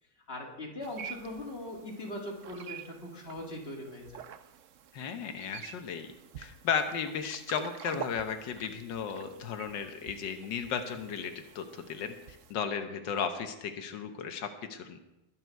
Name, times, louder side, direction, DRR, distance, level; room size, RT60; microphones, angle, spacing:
voice 1, 0.3-4.2, left 1 dB, 35° left, 0 dB, 2.7 m, -40 dB
sound 1, 0.8-12.5, right 9 dB, 60° right, 0.9 m, -48 dB
voice 2, 4.9-6.1 6.4-12.1 12.5-15.0, left 7 dB, 90° left, 7 dB, 1.7 m, -35 dB
21.5 x 8.0 x 4.6 m, 0.92 s
omnidirectional pair, 1.9 m